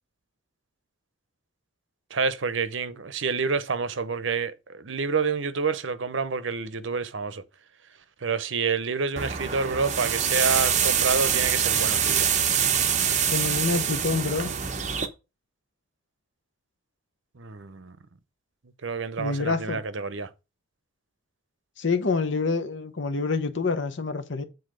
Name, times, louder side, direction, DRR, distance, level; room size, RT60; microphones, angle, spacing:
voice 1, 2.1-7.4 8.2-12.3 17.3-18.0 18.8-20.3, right 5 dB, 70° right, 0.7 m, -28 dB
sound 1, 9.2-15.1, right 8 dB, 35° right, 0.8 m, -25 dB
voice 2, 13.3-14.5 19.2-19.8 21.8-24.4, left 4 dB, 65° left, 0.8 m, -27 dB
7.2 x 4.0 x 6.4 m
head